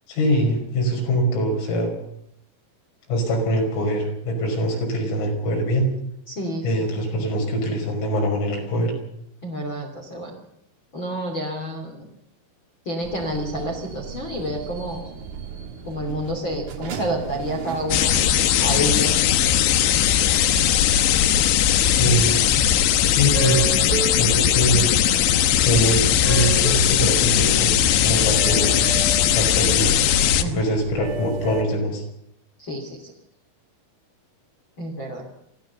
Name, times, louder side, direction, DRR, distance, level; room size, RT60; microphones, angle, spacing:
voice 1, 0.1-1.9 3.1-5.9 6.6-8.9 21.8-22.4 23.1-23.8 24.1-24.9 25.6-26.0 26.3-28.8 29.3-29.9 30.4-32.0, equal, 90° left, 1 dB, 8.2 m, -23 dB
voice 2, 6.3-6.8 9.4-10.3 10.9-12.1 12.8-15.1 15.8-18.1 18.6-19.1 22.0-22.2 30.4-30.6 32.6-33.1 34.8-35.2, equal, 30° left, 1 dB, 3.0 m, -29 dB
sound 1, 13.0-31.6, right 7 dB, 55° right, 2.3 m, -35 dB
sound 2, 17.9-30.4, left 11 dB, 75° left, 3.1 m, -19 dB
24.0 x 16.0 x 6.8 m, 0.76 s
omnidirectional pair, 5.7 m